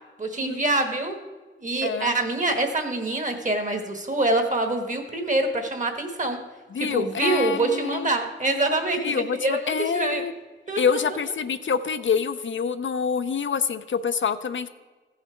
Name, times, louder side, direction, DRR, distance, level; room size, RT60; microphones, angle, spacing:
voice 1, 0.2-1.2 1.6-6.4 6.8-10.3 10.7-11.2, right 2 dB, 40° right, 5 dB, 1.4 m, -25 dB
voice 2, 6.7-8.1 9.0-10.3 10.8-14.7, left 6 dB, 70° left, 10 dB, 0.5 m, -26 dB
15.5 x 5.7 x 4.5 m, 1.3 s
wide cardioid pair, 110°, 20 cm